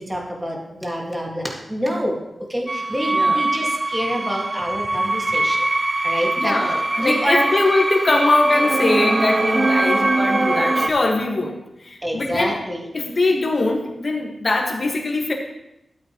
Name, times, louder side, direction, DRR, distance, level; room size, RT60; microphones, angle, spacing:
voice 1, 0.0-2.2 2.5-5.6 6.0-7.5 8.1-8.2 12.0-12.9, equal, 15° right, -1 dB, 2.1 m, -26 dB
sound 1, 2.7-10.9, right 2 dB, 35° right, 0.5 m, -22 dB
voice 2, 6.4-12.6 12.9-15.3, left 2 dB, 45° left, 0 dB, 1.8 m, -22 dB
13.0 x 8.5 x 3.2 m, 0.89 s
wide cardioid pair, 80°, 0 cm